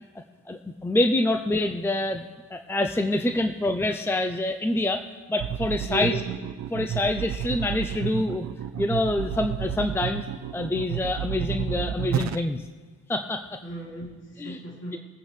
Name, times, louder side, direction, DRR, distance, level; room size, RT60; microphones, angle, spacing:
voice 1, 0.5-2.2 2.5-6.2 6.7-8.5 8.8-10.2 10.5-12.6 13.1-13.6 14.4-14.6, left 1 dB, 10° left, 7 dB, 0.6 m, -26 dB
sound 1, 5.4-12.4, right 9 dB, 65° right, 0.6 m, -31 dB
voice 2, 5.9-6.3 13.6-15.0, right 1 dB, 55° left, -4 dB, 3.9 m, -35 dB
22.5 x 9.2 x 3.3 m, 1.5 s
cardioid pair, 90°, 30 cm